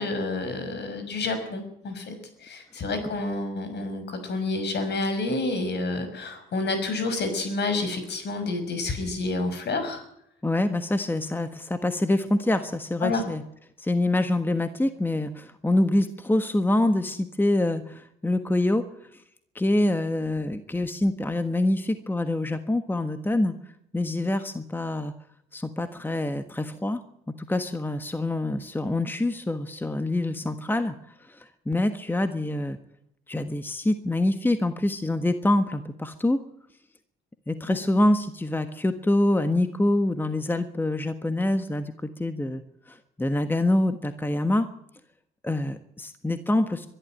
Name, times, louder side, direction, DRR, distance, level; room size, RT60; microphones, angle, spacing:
voice 1, 0.0-10.0 13.0-13.2 37.7-37.8, left 3 dB, 60° left, 8 dB, 6.0 m, -29 dB
voice 2, 10.4-13.4 13.8-18.8 19.1-19.2 19.5-23.5 23.9-25.1 25.5-27.0 27.3-30.9 31.2-32.8 33.3-36.4 37.5-42.6 42.9-44.7 45.4-46.9, left 1 dB, 10° left, 9 dB, 1.4 m, -25 dB
23.0 x 12.5 x 9.0 m, 0.73 s
cardioid pair, 90°, 20 cm